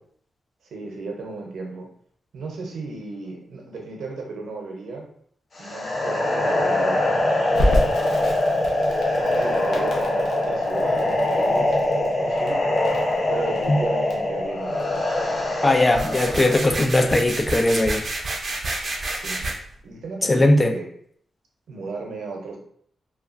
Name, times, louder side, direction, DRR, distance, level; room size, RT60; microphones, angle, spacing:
voice 1, 0.7-1.9 2.3-5.1 5.6-7.8 9.2-12.6 13.3-15.0 19.1-19.4 19.8-20.9 21.7-22.6, right 3 dB, 85° right, 0 dB, 0.7 m, -35 dB
sound 1, 5.6-16.7, left 1 dB, 40° left, 0.7 m, -23 dB
Crackle, 7.5-18.3, equal, 80° left, 0.7 m, -31 dB
voice 2, 15.6-18.0 20.3-20.7, left 2 dB, 20° left, 7 dB, 0.3 m, -19 dB
sound 2, 15.9-19.5, right 2 dB, 45° right, 0.5 m, -29 dB
3.0 x 2.3 x 2.5 m, 0.63 s
wide cardioid pair, 120°, 0 cm